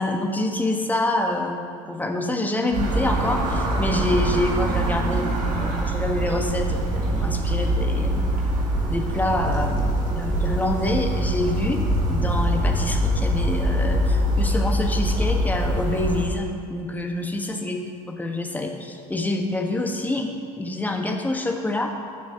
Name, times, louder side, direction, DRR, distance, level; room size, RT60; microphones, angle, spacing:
voice 1, 0.0-1.6 1.9-8.2 8.9-21.9, left 2 dB, 10° left, 2 dB, 1.4 m, -26 dB
sound 1, 2.7-16.3, right 1 dB, 45° right, 2.1 m, -23 dB
19.0 x 7.1 x 2.9 m, 2.3 s
figure-of-eight pair, 70°, 19 cm